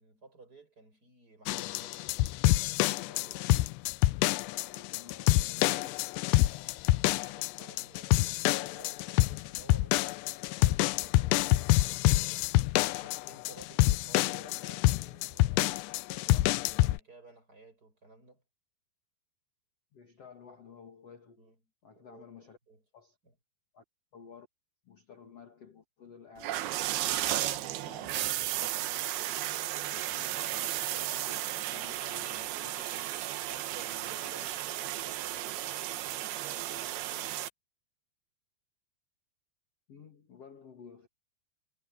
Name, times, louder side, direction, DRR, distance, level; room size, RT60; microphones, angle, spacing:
voice 1, 0.0-2.2 2.8-3.5 4.7-5.1 7.1-10.2 10.6-12.5 12.9-18.4 21.4-21.6 21.9-22.8 23.2-23.3 27.5-27.9 33.3-37.4, right 3 dB, 20° right, 6.4 m, -55 dB
sound 1, 1.5-17.0, left 18 dB, 85° left, 2.8 m, -27 dB
voice 2, 4.8-6.0 19.9-21.5 21.8-22.6 22.9-23.2 23.7-23.8 24.1-24.5 24.8-26.7 27.8-28.9 29.8-33.2 33.7-34.6 39.9-41.1, left 6 dB, 45° left, 2.8 m, -53 dB
sound 2, 26.4-37.5, right 14 dB, 75° right, 2.9 m, -34 dB
omnidirectional pair, 4.8 m